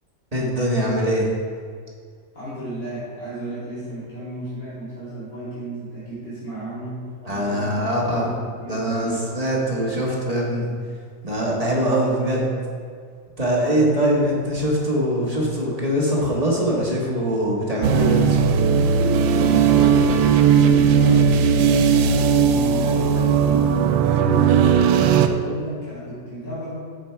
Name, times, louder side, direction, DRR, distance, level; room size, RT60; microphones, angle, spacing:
voice 1, 0.3-1.3 7.2-8.3 8.7-10.7 11.2-12.5 13.4-18.4, equal, 20° right, -4 dB, 1.5 m, -22 dB
voice 2, 2.3-7.0 7.3-8.3 8.6-9.2 13.6-14.5 19.3-23.7 24.0-26.7, equal, 65° left, -11 dB, 3.2 m, -33 dB
sound 1, 17.8-25.3, right 7 dB, 80° right, 1.3 m, -17 dB
7.2 x 7.1 x 4.6 m, 2.1 s
omnidirectional pair, 2.1 m